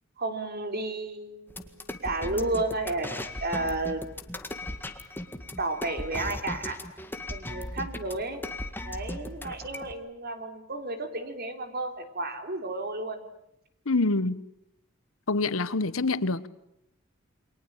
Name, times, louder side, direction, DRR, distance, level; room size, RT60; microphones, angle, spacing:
voice 1, 0.2-3.1 3.4-4.0 5.6-6.8 7.3-8.4 8.8-13.3, right 2 dB, 50° right, 3.5 m, -32 dB
sound 1, 1.5-9.9, left 1 dB, 10° left, 1.9 m, -37 dB
voice 2, 13.9-14.4 15.3-16.5, left 3 dB, 75° left, 1.1 m, -26 dB
29.0 x 23.5 x 8.9 m
head